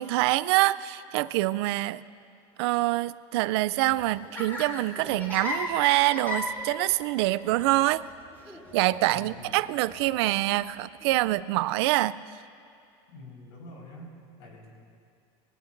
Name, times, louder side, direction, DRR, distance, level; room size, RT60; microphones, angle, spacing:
voice 1, 0.0-2.0 2.6-8.1 8.7-12.2, right 17 dB, 75° right, 17 dB, 0.4 m, -25 dB
Laughter, 3.7-11.3, left 1 dB, 15° left, 3.6 m, -38 dB
voice 2, 9.1-9.6 13.1-14.1 14.4-14.7, left 2 dB, 90° left, -2 dB, 4.6 m, -46 dB
20.5 x 19.0 x 2.6 m, 2.5 s
supercardioid pair, 135°, 14 cm